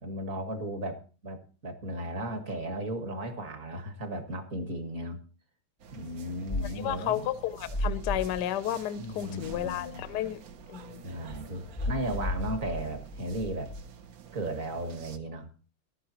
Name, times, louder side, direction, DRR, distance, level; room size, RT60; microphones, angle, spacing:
voice 1, 0.0-5.2 5.9-7.3 9.0-10.0 11.0-13.7 14.3-15.5, right 1 dB, 40° right, 1.8 m, -35 dB
sound 1, 5.8-15.2, right 6 dB, 60° right, 1.0 m, -49 dB
sound 2, 6.5-7.0 7.6-8.4 11.3-13.8, left 1 dB, 25° left, 0.8 m, -34 dB
voice 2, 6.6-10.4 10.7-11.0, left 12 dB, 70° left, 1.0 m, -32 dB
14.5 x 11.5 x 2.9 m
omnidirectional pair, 2.4 m